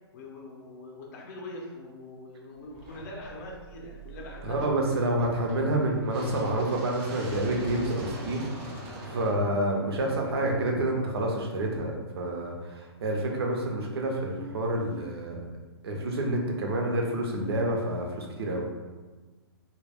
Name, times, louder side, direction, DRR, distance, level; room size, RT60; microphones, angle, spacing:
voice 1, 0.1-4.8 9.1-9.2, left 2 dB, 35° left, -2 dB, 0.5 m, -43 dB
sound 1, 2.7-10.8, right 1 dB, 20° right, 0.3 m, -43 dB
voice 2, 4.4-15.4 15.8-18.7, right 1 dB, 65° right, 0 dB, 0.6 m, -28 dB
2.2 x 2.2 x 3.4 m, 1.3 s
hypercardioid pair, 155°, 14 cm